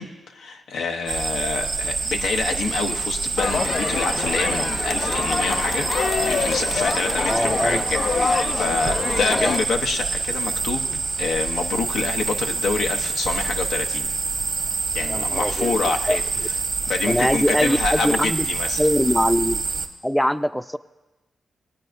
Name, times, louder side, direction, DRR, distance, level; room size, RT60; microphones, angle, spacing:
voice 1, 0.0-10.9 11.2-14.1 14.9-16.2 16.9-18.8, left 4 dB, 85° left, 3 dB, 0.7 m, -27 dB
sound 1, 1.1-19.9, right 4 dB, 60° right, 1.1 m, -26 dB
Crowd, 3.4-9.6, left 5 dB, 60° left, 0.4 m, -26 dB
voice 2, 7.3-7.9 9.3-9.5 15.1-15.8 16.1-16.2 17.1-18.5 18.8-19.6 20.0-20.8, equal, 5° left, 12 dB, 0.5 m, -22 dB
19.5 x 9.1 x 2.6 m, 1.1 s
supercardioid pair, 50°, 0 cm